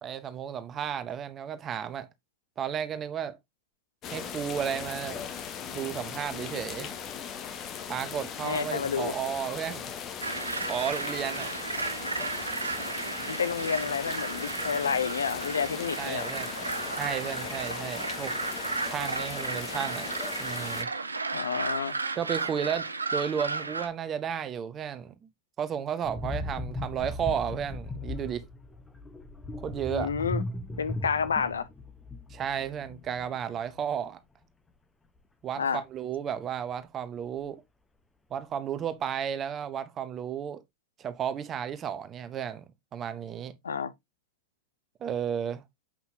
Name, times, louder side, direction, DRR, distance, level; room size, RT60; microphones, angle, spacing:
voice 1, 0.0-2.1 2.6-3.4 4.1-5.2 5.7-6.9 7.9-10.0 10.7-11.5 16.0-16.5 16.9-18.3 18.8-20.1 20.4-20.9 22.2-25.3 25.6-28.4 29.6-30.1 32.3-34.2 35.4-37.6 38.3-40.6 41.0-42.6 42.9-43.5 45.0-45.6, right 8 dB, 25° right, 0.9 m, -33 dB
sound 1, 4.0-20.8, left 8 dB, 35° left, 1.2 m, -39 dB
voice 2, 8.4-9.1 13.3-16.3 21.3-21.9 29.9-30.4 30.8-31.7 35.6-35.8 43.6-43.9, left 6 dB, 70° left, 0.8 m, -30 dB
sound 2, 10.2-23.9, right 3 dB, 80° right, 0.7 m, -34 dB
sound 3, 26.0-33.5 33.7-33.9, left 2 dB, 10° left, 1.0 m, -37 dB
7.5 x 5.6 x 2.8 m
figure-of-eight pair, 90°, 0 cm